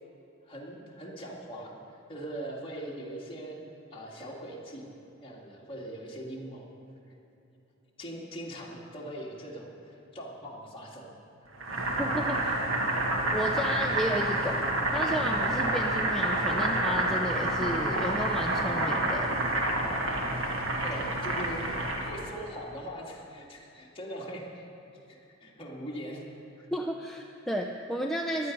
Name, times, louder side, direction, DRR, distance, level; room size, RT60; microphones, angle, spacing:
voice 1, 0.4-1.7 2.1-3.6 3.9-4.9 5.2-6.7 8.0-11.1 11.4-11.5 20.8-24.7 25.1-26.2 26.6-26.7, right 1 dB, 30° left, -3 dB, 2.2 m, -41 dB
Boiling, 11.6-22.2, right 1 dB, 90° right, 1.7 m, -28 dB
voice 2, 12.0-12.5 13.3-14.6 14.9-19.3 21.2-21.4 26.7-28.5, equal, ahead, 0 dB, 0.5 m, -32 dB
15.5 x 11.5 x 5.3 m, 3.0 s
head